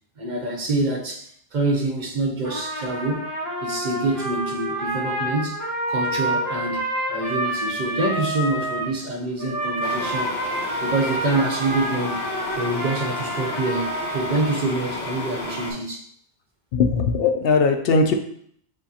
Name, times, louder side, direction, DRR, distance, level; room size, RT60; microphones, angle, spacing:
voice 1, 0.2-3.3 3.6-5.6 5.9-6.8 7.1-10.4 10.8-12.2 12.6-16.0, right 2 dB, 50° right, 1 dB, 0.8 m, -26 dB
Trumpet, 2.4-8.9 9.4-14.7, right 1 dB, 20° left, 1.1 m, -28 dB
sound 1, 9.8-15.7, left 2 dB, 90° left, 1.3 m, -32 dB
voice 2, 16.7-18.1, left 4 dB, 70° left, 5 dB, 0.8 m, -19 dB
7.1 x 2.6 x 2.7 m, 0.64 s
omnidirectional pair, 1.0 m